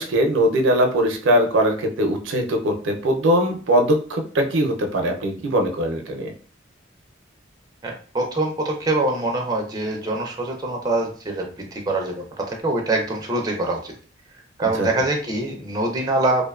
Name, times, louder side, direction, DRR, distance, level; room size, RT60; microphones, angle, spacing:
voice 1, 0.0-6.3 14.8-14.9, right 1 dB, 90° right, 4 dB, 0.5 m, -21 dB
voice 2, 7.8-13.9 14.6-16.5, right 2 dB, 20° right, 1 dB, 0.4 m, -24 dB
2.5 x 2.1 x 2.3 m, 0.41 s
head